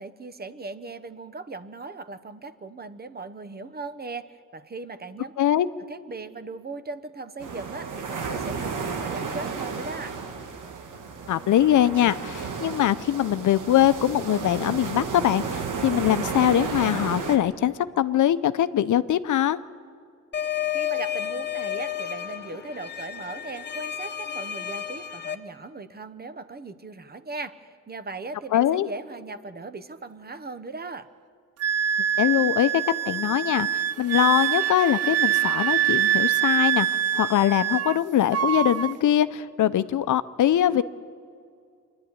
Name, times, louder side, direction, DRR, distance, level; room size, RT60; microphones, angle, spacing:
voice 1, 0.0-5.3 5.9-10.2 20.7-31.1, right 3 dB, 30° right, 12 dB, 0.9 m, -38 dB
sound 1, 7.4-17.4, right 5 dB, 85° right, 1.9 m, -33 dB
voice 2, 11.3-19.6 28.5-28.9 32.2-40.8, left 11 dB, 75° left, 14 dB, 0.7 m, -22 dB
sound 2, 20.3-25.3, left 10 dB, 35° left, 1.1 m, -31 dB
Wind instrument woodwind instrument, 31.6-38.0 38.3-38.9, right 11 dB, 55° right, 0.5 m, -24 dB
24.5 x 11.5 x 9.6 m, 2.3 s
cardioid pair, 95°, 30 cm